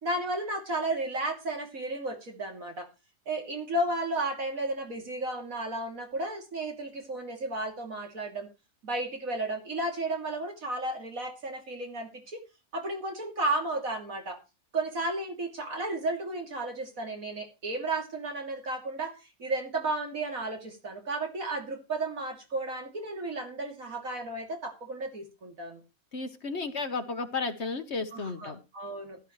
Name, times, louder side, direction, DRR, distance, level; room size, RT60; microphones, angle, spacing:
voice 1, 0.0-2.9 3.3-8.5 8.8-12.4 12.7-14.4 14.7-25.8 28.1-29.2, right 2 dB, 70° right, 2 dB, 3.3 m, -33 dB
voice 2, 26.1-28.6, left 4 dB, 50° left, 9 dB, 1.4 m, -33 dB
15.5 x 12.0 x 3.2 m, 0.28 s
omnidirectional pair, 1.5 m